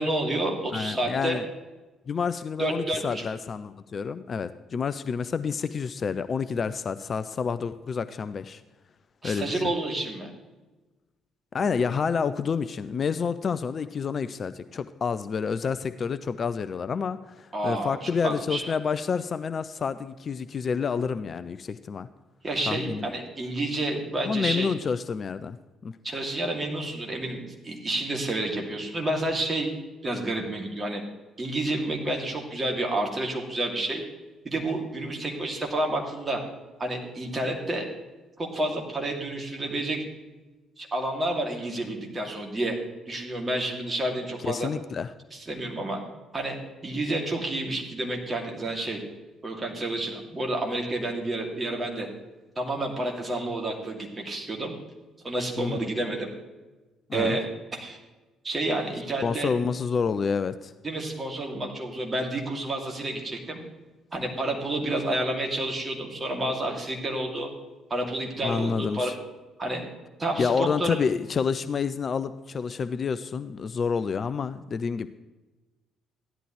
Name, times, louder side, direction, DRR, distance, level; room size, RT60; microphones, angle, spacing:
voice 1, 0.0-1.4 2.6-3.3 9.2-10.3 17.5-18.7 22.4-24.7 26.0-29.7 30.0-31.0 31.4-34.0 34.4-36.4 36.8-37.9 38.4-40.0 40.8-42.8 43.1-44.7 45.3-46.0 46.3-46.6 46.8-49.0 49.4-52.1 52.6-54.7 55.2-56.3 57.1-57.4 57.7-58.0 58.4-59.5 60.8-63.6 64.1-67.5 67.9-69.1 69.6-69.8 70.2-71.0, right 1 dB, 25° right, 1 dB, 2.5 m, -29 dB
voice 2, 0.7-1.4 2.1-8.6 9.2-9.6 11.5-22.1 22.7-23.1 24.2-25.6 25.8-26.0 44.4-45.1 55.6-55.9 57.1-57.4 59.2-60.7 68.4-69.1 70.4-75.1, left 6 dB, 40° left, 13 dB, 0.4 m, -29 dB
15.0 x 11.0 x 3.1 m, 1.2 s
figure-of-eight pair, 45°, 0 cm